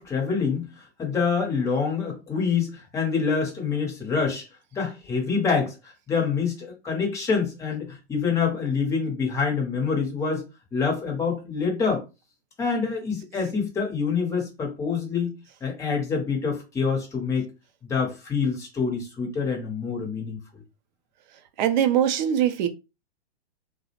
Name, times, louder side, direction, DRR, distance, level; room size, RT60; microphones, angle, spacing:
voice 1, 0.0-4.4 4.7-10.4 10.7-12.0 12.6-15.3 15.6-17.5 17.8-20.6, left 5 dB, 10° left, 0.6 m, -26 dB
voice 2, 21.6-22.7, right 10 dB, 45° right, 0.4 m, -22 dB
2.3 x 2.0 x 2.8 m
hypercardioid pair, 135°, 33 cm